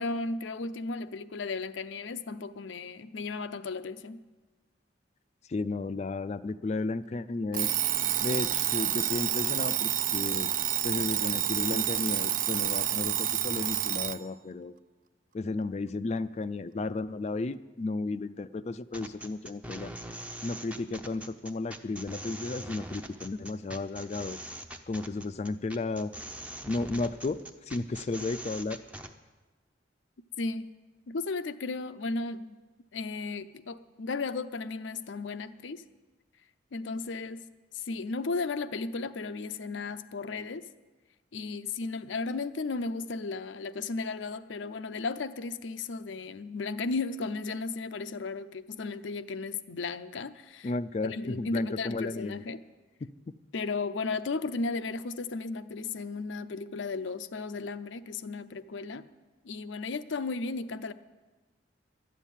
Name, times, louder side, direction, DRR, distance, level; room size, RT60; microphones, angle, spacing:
voice 1, 0.0-4.2 30.4-30.7 31.1-32.6 32.9-35.8 36.7-37.4 37.7-40.6 41.3-50.7 51.0-52.6 53.5-59.0 59.4-60.9, left 3 dB, 80° left, 12 dB, 0.6 m, -35 dB
voice 2, 5.5-7.7 8.2-10.5 10.8-14.7 15.3-19.9 20.4-24.4 24.9-26.1 26.7-27.4 27.7-28.8 50.6-52.4 53.0-53.1, left 3 dB, 35° left, 15 dB, 0.3 m, -33 dB
Alarm, 7.5-14.2, right 12 dB, 45° right, 0.4 m, -29 dB
sound 1, 18.9-29.1, right 1 dB, 5° right, 0.6 m, -42 dB
12.0 x 7.3 x 9.9 m, 1.2 s
head